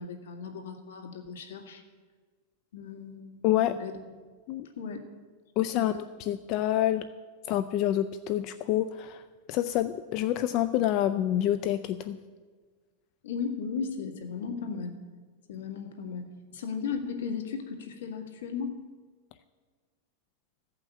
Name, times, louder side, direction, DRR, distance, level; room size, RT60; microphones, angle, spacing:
voice 1, 0.0-1.8 2.7-3.9 4.8-5.0 5.7-5.9 13.2-15.0 15.5-18.8, left 6 dB, 90° left, 4 dB, 1.9 m, -36 dB
voice 2, 3.4-3.8 4.5-4.7 5.6-5.9 6.3-7.1 7.5-9.2 9.5-12.2, left 12 dB, 40° left, 11 dB, 0.4 m, -27 dB
15.0 x 5.8 x 8.1 m, 1.5 s
supercardioid pair, 155°, 0 cm